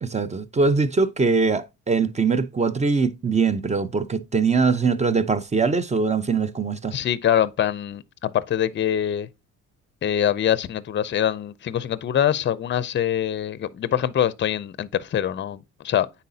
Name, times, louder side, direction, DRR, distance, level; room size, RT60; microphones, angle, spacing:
voice 1, 0.0-7.0, right 4 dB, 20° right, 0.7 m, -22 dB
voice 2, 6.9-9.3 10.0-16.1, left 10 dB, 40° left, 0.5 m, -24 dB
9.3 x 4.2 x 2.7 m
cardioid pair, 90°, 30 cm